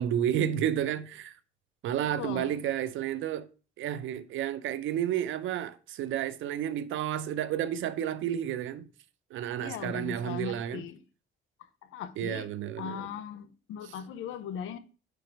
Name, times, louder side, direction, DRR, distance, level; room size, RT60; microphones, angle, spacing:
voice 1, 0.0-1.3 1.8-3.5 3.8-8.9 9.3-10.8 12.2-13.0, right 10 dB, 80° right, 0.6 m, -31 dB
voice 2, 2.1-2.5 9.6-11.0 11.8-12.5 12.8-14.8, left 8 dB, 90° left, 0.7 m, -38 dB
5.1 x 4.7 x 4.6 m
cardioid pair, 90°, 20 cm